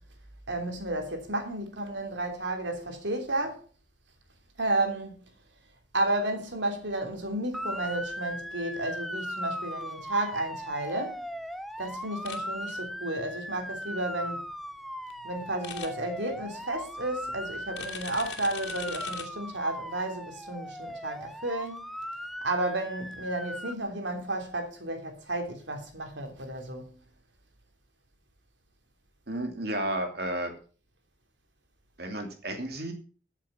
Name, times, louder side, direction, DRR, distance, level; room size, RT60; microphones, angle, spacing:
voice 1, 0.5-3.6 4.6-5.2 5.9-11.2 11.8-14.4 15.2-21.9 22.4-27.0, right 1 dB, 80° right, 3.2 m, -32 dB
Motor vehicle (road) / Siren, 7.5-23.7, equal, ahead, 0.5 m, -38 dB
sound 1, 12.2-12.4 15.6-15.9 17.7-19.2, left 8 dB, 65° left, 2.6 m, -39 dB
voice 2, 29.3-30.5 32.0-32.9, right 1 dB, 55° right, 2.9 m, -32 dB
13.5 x 7.4 x 5.7 m
head